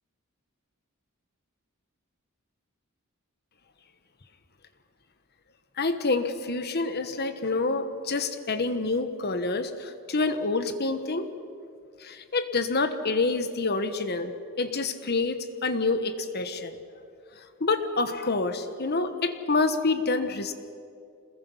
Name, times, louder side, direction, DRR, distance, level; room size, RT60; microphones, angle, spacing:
voice 1, 5.8-11.3 12.0-16.8 17.6-20.5, left 3 dB, 50° left, 9 dB, 1.3 m, -27 dB
26.5 x 21.0 x 5.6 m, 2.4 s
head